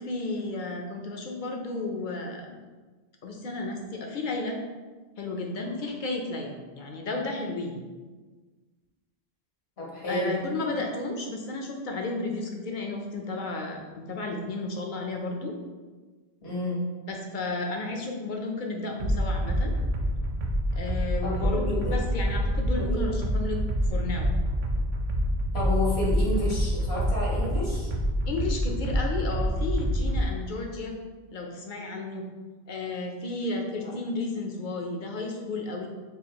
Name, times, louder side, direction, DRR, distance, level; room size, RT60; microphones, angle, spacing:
voice 1, 0.0-2.5 3.2-4.6 5.2-7.8 10.1-15.5 17.1-19.7 20.7-23.6 23.9-24.3 28.3-30.9 31.3-32.2 32.7-35.9, left 2 dB, 60° left, 1 dB, 0.7 m, -33 dB
voice 2, 9.8-10.3 16.4-16.8 21.2-22.0 22.8-23.2 25.5-27.9 33.8-33.9, left 1 dB, 85° left, -5 dB, 1.5 m, -31 dB
sound 1, 19.0-30.3, equal, 55° right, 0.6 m, -27 dB
5.5 x 2.4 x 2.9 m, 1.3 s
omnidirectional pair, 1.0 m